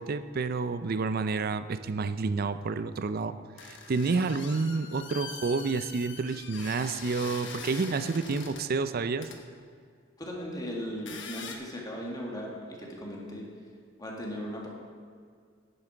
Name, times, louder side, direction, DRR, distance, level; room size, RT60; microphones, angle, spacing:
voice 1, 0.0-3.4 3.6-9.3, right 4 dB, 50° right, 12 dB, 0.5 m, -29 dB
sound 1, 3.6-8.7 9.2-9.4 10.9-11.5, left 4 dB, 65° left, 1.2 m, -42 dB
voice 2, 10.2-13.5 14.0-14.7, equal, 20° left, -2 dB, 1.9 m, -37 dB
11.0 x 9.6 x 4.5 m, 2.1 s
head